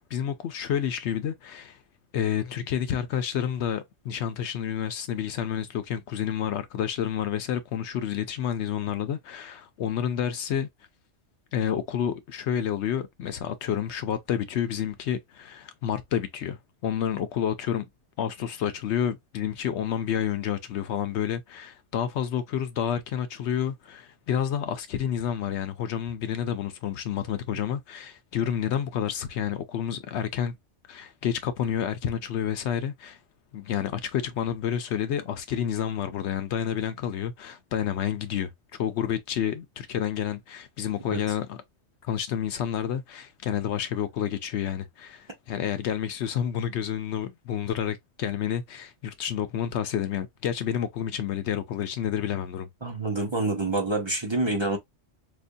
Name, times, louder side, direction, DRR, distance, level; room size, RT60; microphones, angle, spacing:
voice 1, 0.0-1.8 2.1-10.7 11.5-17.9 18.2-30.5 30.9-33.2 33.5-41.6 42.0-52.7, left 9 dB, 70° left, 0.8 m, -29 dB
voice 2, 52.8-54.8, right 2 dB, 25° right, 0.9 m, -27 dB
4.8 x 2.6 x 2.2 m
omnidirectional pair, 1.2 m